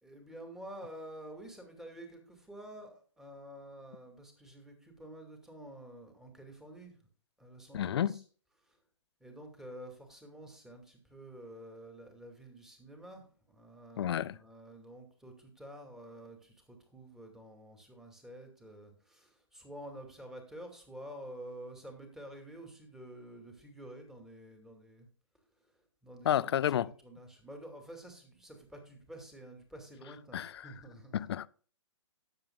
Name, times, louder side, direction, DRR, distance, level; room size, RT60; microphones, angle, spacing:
voice 1, 0.0-7.0 7.4-8.2 8.6-8.8 9.2-25.1 25.6-25.7 26.0-31.3, right 1 dB, 5° right, 2.3 m, -49 dB
voice 2, 7.7-8.1 14.0-14.4 26.2-26.9 30.3-30.5 31.1-31.5, left 10 dB, 55° left, 0.5 m, -30 dB
18.5 x 7.4 x 2.3 m
hypercardioid pair, 130°, 16 cm